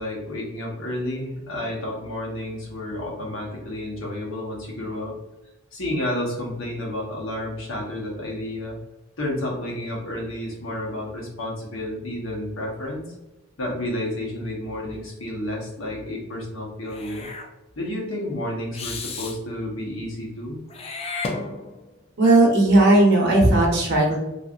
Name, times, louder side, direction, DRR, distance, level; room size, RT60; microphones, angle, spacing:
voice 1, 0.0-5.2 5.7-8.8 9.2-13.0 13.6-17.3 17.8-20.6, left 1 dB, 75° left, -2 dB, 0.9 m, -31 dB
Meow / Hiss, 16.9-17.5 18.7-19.4 20.7-21.9, left 3 dB, 30° left, 0.3 m, -33 dB
voice 2, 22.2-24.2, right 2 dB, 55° right, -2 dB, 0.9 m, -16 dB
3.2 x 2.5 x 2.4 m, 0.99 s
head